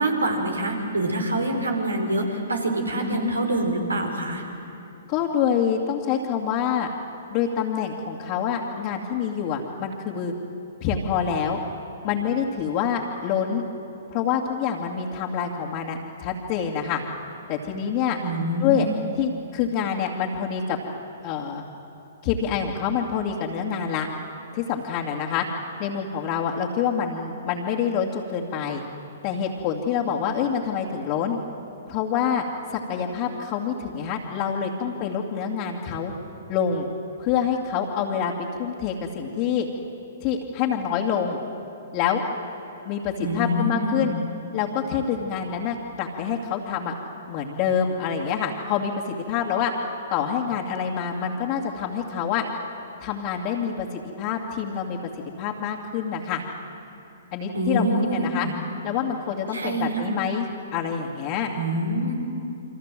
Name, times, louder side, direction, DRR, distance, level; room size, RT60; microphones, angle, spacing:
voice 1, 0.0-4.4 18.2-19.0 43.2-44.1 57.5-58.5 59.5-60.0 61.5-62.1, right 1 dB, 85° right, 3 dB, 4.6 m, -25 dB
voice 2, 3.0-3.3 5.1-6.9 7.3-10.3 10.8-11.6 12.0-13.6 14.1-17.0 17.5-18.2 18.6-18.9 19.2-20.8 21.2-21.6 22.2-24.1 24.5-25.5 25.8-28.8 29.2-31.4 31.9-32.4 32.7-36.1 36.5-36.9 37.2-38.3 38.6-39.7 40.2-41.4 41.9-42.2 42.8-44.1 44.5-46.9 47.3-49.7 50.1-52.4 53.0-55.0 55.4-56.4 57.3-57.8 58.1-58.5 58.8-60.5 60.7-61.5, left 7 dB, 40° left, -4 dB, 2.5 m, -26 dB
29.0 x 25.0 x 7.7 m, 2.8 s
figure-of-eight pair, 120°, 0 cm